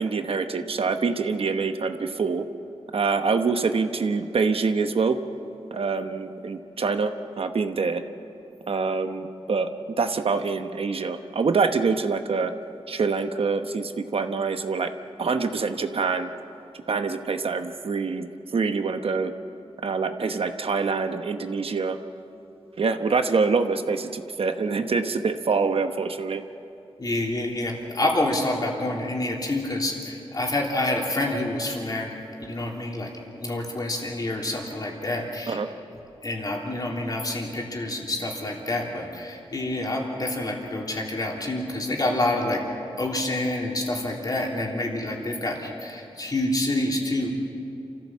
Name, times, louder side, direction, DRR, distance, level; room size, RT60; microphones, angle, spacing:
voice 1, 0.0-2.5 2.9-5.2 5.7-8.0 8.7-9.7 10.0-12.5 12.9-14.9 15.2-16.3 16.9-19.3 19.8-22.0 22.8-26.4 35.5-35.7, right 4 dB, 65° right, 7 dB, 1.0 m, -25 dB
voice 2, 27.0-32.1 32.4-33.1 33.4-35.6 36.2-42.6 43.0-47.3, left 1 dB, 40° left, -1 dB, 3.4 m, -27 dB
28.0 x 15.0 x 7.4 m, 2.7 s
wide cardioid pair, 130°, 10 cm